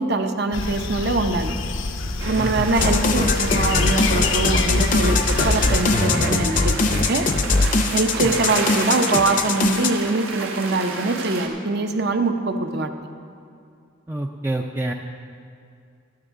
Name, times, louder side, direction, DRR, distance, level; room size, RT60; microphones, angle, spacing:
voice 1, 0.0-1.5 2.2-7.3 7.9-12.9, right 3 dB, 55° right, 6 dB, 0.7 m, -23 dB
sound 1, 0.5-5.8, left 3 dB, 75° left, 0.8 m, -27 dB
sound 2, 2.2-11.5, right 3 dB, 80° right, 1.3 m, -32 dB
voice 2, 2.4-2.7 8.2-8.4 14.1-14.9, right 2 dB, 10° right, 2 dB, 0.4 m, -27 dB
sound 3, 2.7-9.9, left 3 dB, 40° left, 0.6 m, -21 dB
13.0 x 12.0 x 3.7 m, 2.4 s
head